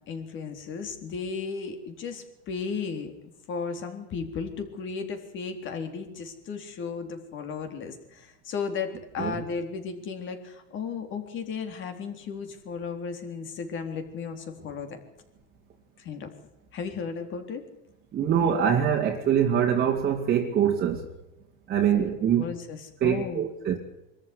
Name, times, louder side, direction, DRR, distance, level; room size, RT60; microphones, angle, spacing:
voice 1, 0.1-3.1 3.5-15.0 16.0-16.3 16.7-17.6 22.0-22.1 22.4-23.5, left 5 dB, 40° left, 6 dB, 3.9 m, -35 dB
voice 2, 18.1-21.1 21.7-22.4 23.0-23.8, right 8 dB, 30° right, -1 dB, 2.3 m, -24 dB
24.0 x 14.0 x 9.7 m, 0.89 s
supercardioid pair, 140°, 31 cm